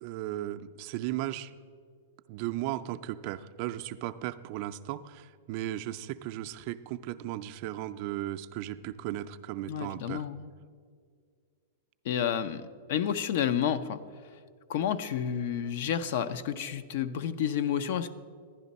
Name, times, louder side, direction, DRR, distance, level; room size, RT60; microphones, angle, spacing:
voice 1, 0.0-1.5 2.3-10.2, right 14 dB, 50° right, 10 dB, 0.4 m, -36 dB
voice 2, 9.7-10.5 12.0-12.6 12.9-14.0 14.7-18.1, left 9 dB, 60° left, 11 dB, 0.5 m, -30 dB
11.5 x 10.0 x 4.1 m, 2.1 s
hypercardioid pair, 130°, 0 cm